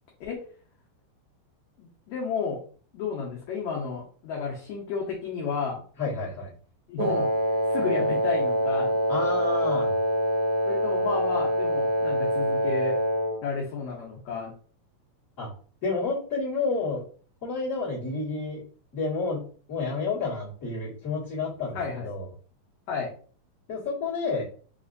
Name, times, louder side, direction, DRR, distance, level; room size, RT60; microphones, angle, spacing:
voice 1, 1.8-2.6 2.9-5.8 6.9-7.3 7.7-9.0 10.7-13.0 13.4-14.5 21.8-22.1 22.9-23.1, left 5 dB, 70° left, -2 dB, 1.8 m, -32 dB
voice 2, 6.0-6.5 9.1-9.9 15.4-15.5 15.8-17.0 17.4-18.6 18.9-19.4 19.7-22.2 23.7-24.4, left 4 dB, 35° left, -9 dB, 1.4 m, -30 dB
Wind instrument woodwind instrument, 7.0-13.4, right 1 dB, 70° right, 1.7 m, -25 dB
5.0 x 3.0 x 2.5 m, 0.43 s
omnidirectional pair, 4.0 m